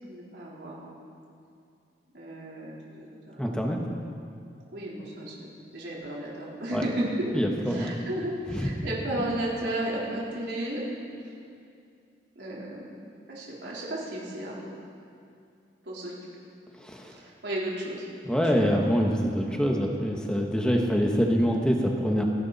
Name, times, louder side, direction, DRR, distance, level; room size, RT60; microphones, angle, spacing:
voice 1, 0.1-1.0 2.1-3.6 4.7-10.8 12.4-12.8 13.3-14.7 15.8-16.1 17.2-18.0 18.5-18.9 20.8-21.0, right 1 dB, 75° right, -5 dB, 3.9 m, -34 dB
voice 2, 3.4-3.8 6.7-6.8 7.3-7.9 8.5-8.7 16.8-17.1 18.2-22.2, equal, 5° left, 1 dB, 1.3 m, -25 dB
27.5 x 11.0 x 4.2 m, 2.4 s
head